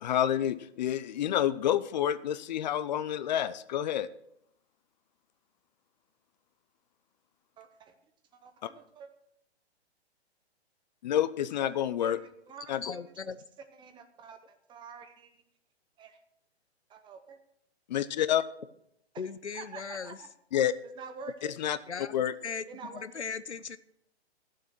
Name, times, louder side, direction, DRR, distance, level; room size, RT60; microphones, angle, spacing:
voice 1, 0.0-4.1 8.6-8.7 11.0-12.2 12.7-12.8 17.9-18.4 20.5-20.7 21.6-21.8 22.1-22.3, left 10 dB, 40° left, 15 dB, 0.6 m, -28 dB
voice 2, 7.6-7.9 8.3-9.1 11.6-13.0 13.7-15.4 16.0-16.2 16.9-17.4 19.5-20.3 20.8-21.5 22.7-23.3, right 5 dB, 15° right, 8 dB, 0.9 m, -48 dB
voice 3, 12.8-13.4 19.2-20.2 21.9-22.1 22.4-23.8, left 5 dB, 90° left, 14 dB, 0.8 m, -38 dB
13.0 x 7.5 x 6.0 m, 0.77 s
figure-of-eight pair, 125°, 33 cm